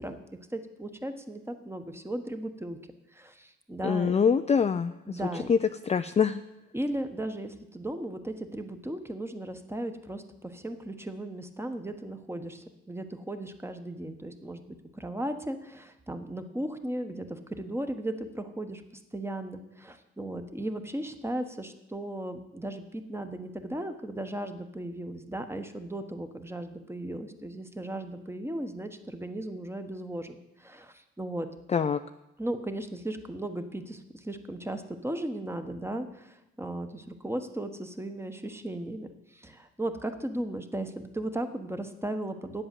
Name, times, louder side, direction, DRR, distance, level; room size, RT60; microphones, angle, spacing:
voice 1, 0.0-2.8 3.1-4.1 5.1-5.5 6.7-31.5 32.4-42.6, right 1 dB, 10° right, 7 dB, 1.1 m, -36 dB
voice 2, 3.8-5.2 5.5-5.6 5.9-6.4 31.7-32.0, left 6 dB, 20° left, 9 dB, 0.4 m, -24 dB
9.5 x 7.9 x 7.6 m, 0.91 s
cardioid pair, 90°, 30 cm